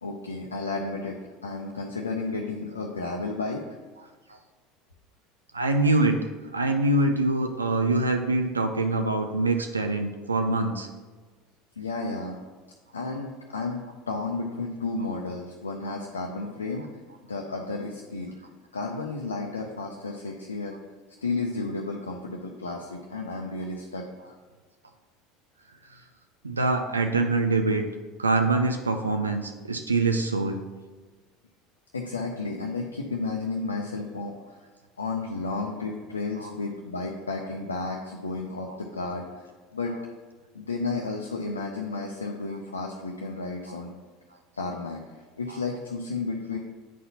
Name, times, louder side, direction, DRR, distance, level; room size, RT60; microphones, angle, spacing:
voice 1, 0.0-3.8 11.8-12.4 12.9-17.0 17.3-18.3 18.7-20.7 21.2-24.1 31.9-34.6 35.0-39.9 40.5-43.9 44.6-46.6, left 3 dB, 85° left, 0 dB, 0.5 m, -32 dB
voice 2, 5.5-6.3 6.5-10.9 15.0-15.1 26.4-27.8 28.2-30.6 36.4-36.5 38.7-38.8, right 2 dB, 85° right, 5 dB, 0.3 m, -24 dB
9.0 x 4.1 x 2.8 m, 1.4 s
figure-of-eight pair, 75°, 0 cm